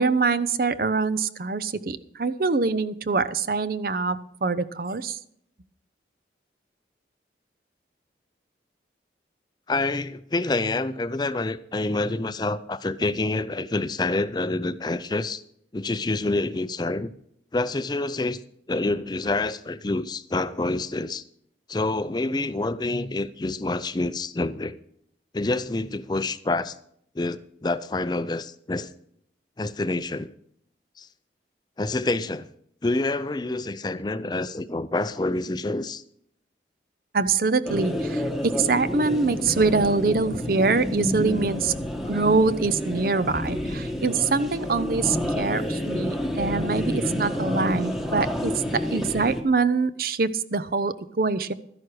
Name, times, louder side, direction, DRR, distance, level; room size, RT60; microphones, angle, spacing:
voice 1, 0.0-5.2 37.1-41.7 42.1-51.5, right 4 dB, 55° right, 0.6 m, -24 dB
voice 2, 9.7-15.4 15.7-17.1 17.5-18.4 18.7-21.2 21.7-24.8 25.3-26.8 27.2-28.9 29.6-30.3 31.0-31.1 31.8-32.5 32.8-36.0, left 2 dB, 25° left, 0.4 m, -27 dB
sound 1, 37.7-49.4, left 1 dB, ahead, 1.2 m, -29 dB
13.0 x 10.5 x 4.8 m
head